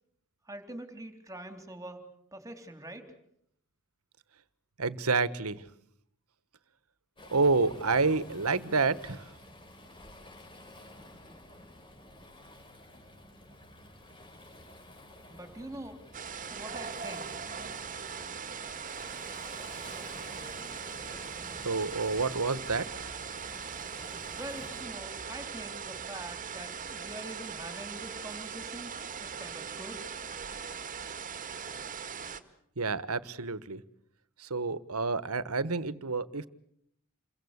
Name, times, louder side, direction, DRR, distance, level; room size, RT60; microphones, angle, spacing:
voice 1, 0.5-2.0 2.3-3.2 15.3-16.0 16.5-17.4 24.3-28.9 29.2-30.1, right 1 dB, 15° right, 7 dB, 3.7 m, -44 dB
voice 2, 4.8-5.6 7.3-9.2 21.6-23.1 32.8-33.8 34.4-36.5, right 4 dB, 80° right, 16 dB, 1.4 m, -29 dB
Waves surf, 7.2-24.8, left 1 dB, 25° left, 5.5 m, -51 dB
sound 1, 16.1-32.4, right 6 dB, 35° right, 1.9 m, -40 dB
28.5 x 23.5 x 8.3 m, 0.71 s
head